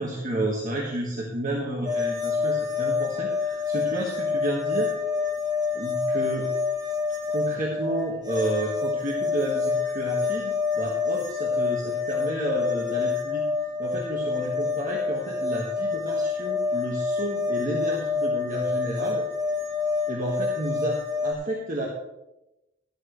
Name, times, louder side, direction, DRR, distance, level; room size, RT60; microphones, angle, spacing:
voice 1, 0.0-4.9 5.7-6.5 7.3-13.4 13.8-19.2 20.1-21.9, right 1 dB, 40° right, -2 dB, 1.6 m, -31 dB
sound 1, 1.8-21.3, left 4 dB, 20° right, 1.4 m, -27 dB
13.0 x 12.5 x 3.2 m, 0.92 s
head